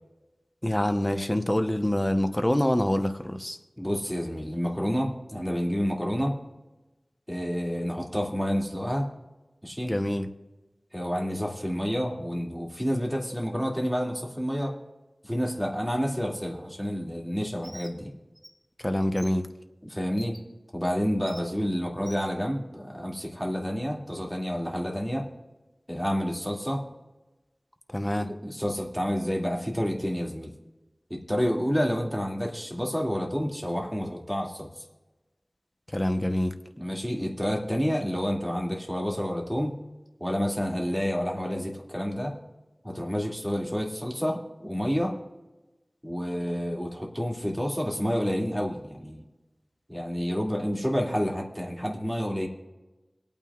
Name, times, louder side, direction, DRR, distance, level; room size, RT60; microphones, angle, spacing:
voice 1, 0.6-3.6 9.9-10.3 18.8-19.5 27.9-28.3 35.9-36.6, left 1 dB, 20° left, 7 dB, 0.9 m, -26 dB
voice 2, 3.8-6.3 7.3-9.1 9.6-9.9 10.9-14.7 15.2-18.1 19.9-20.4 20.7-25.2 25.9-26.8 28.3-30.5 31.1-34.7 36.8-39.8 40.2-42.3 42.8-45.1 46.0-49.2 49.9-52.5, equal, 5° right, -1 dB, 2.4 m, -29 dB
Bird, 17.6-17.9 18.4-18.5 19.2-19.3 20.2-20.4 21.3-21.4 22.1-22.2, right 1 dB, 25° right, 1.5 m, -46 dB
26.0 x 9.0 x 2.4 m, 1.1 s
wide cardioid pair, 50°, 0 cm